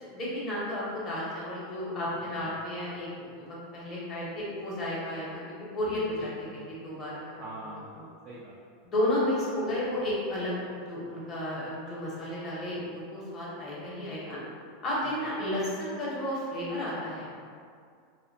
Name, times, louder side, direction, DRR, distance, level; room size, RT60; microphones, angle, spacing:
voice 1, 0.1-7.4 8.8-14.4 14.8-17.3, left 1 dB, 25° left, -7 dB, 0.8 m, -32 dB
voice 2, 2.2-2.5 6.2-6.6 7.4-8.8 15.0-15.1, right 1 dB, 40° right, -4 dB, 0.3 m, -45 dB
2.5 x 2.1 x 2.6 m, 2.2 s
supercardioid pair, 135°, 0 cm